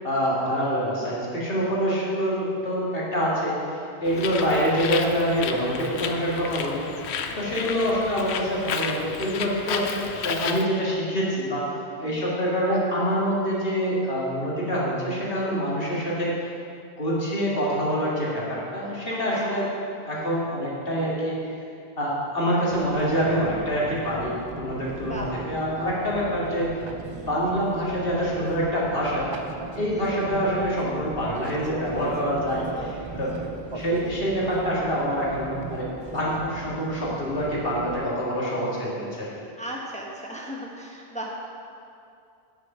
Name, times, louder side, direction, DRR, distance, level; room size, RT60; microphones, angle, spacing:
voice 1, 0.0-6.9 7.3-11.7 12.0-16.4 17.0-19.7 20.0-21.4 22.0-26.7 27.3-29.3 29.8-33.3 33.7-39.3, equal, 55° left, -6 dB, 2.2 m, -26 dB
Bird, 4.0-10.6, left 6 dB, 80° left, 0.9 m, -32 dB
voice 2, 7.3-7.6 12.0-12.2 19.1-19.7 25.0-25.3 27.1-27.4 29.9-30.1 33.2-33.4 39.6-41.3, right 1 dB, 5° left, -2 dB, 0.9 m, -38 dB
Fixed-wing aircraft airplane, 22.7-38.1, right 3 dB, 40° right, 0.4 m, -37 dB
9.1 x 6.5 x 5.5 m, 2.5 s
omnidirectional pair, 1.1 m